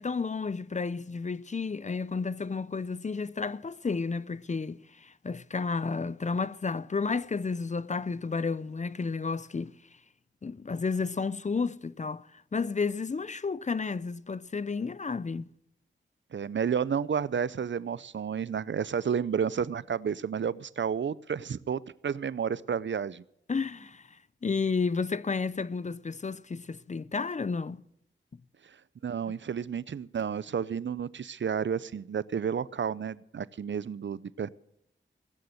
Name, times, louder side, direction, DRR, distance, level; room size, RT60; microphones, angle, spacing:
voice 1, 0.0-9.7 10.4-15.5 23.5-24.0 24.4-27.8, left 4 dB, 35° left, 0.5 m, -32 dB
voice 2, 16.3-23.2 29.0-34.5, right 7 dB, 65° right, 0.5 m, -31 dB
17.0 x 9.8 x 7.7 m
wide cardioid pair, 85°, 20 cm